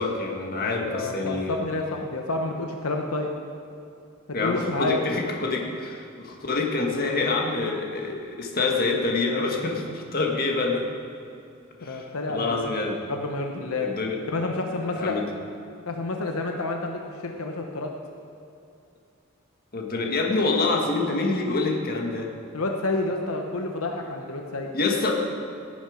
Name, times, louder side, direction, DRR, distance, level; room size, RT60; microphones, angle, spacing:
voice 1, 0.0-1.6 4.3-10.9 11.8-13.0 13.8-14.2 14.9-15.3 19.7-22.3 24.7-25.4, left 3 dB, 45° left, 1 dB, 1.7 m, -26 dB
voice 2, 0.8-3.3 4.4-5.0 11.8-12.6 13.1-13.9 14.3-15.1 15.9-17.9 22.5-24.7, left 2 dB, 80° left, 2 dB, 1.0 m, -29 dB
17.5 x 8.7 x 5.1 m, 2.6 s
head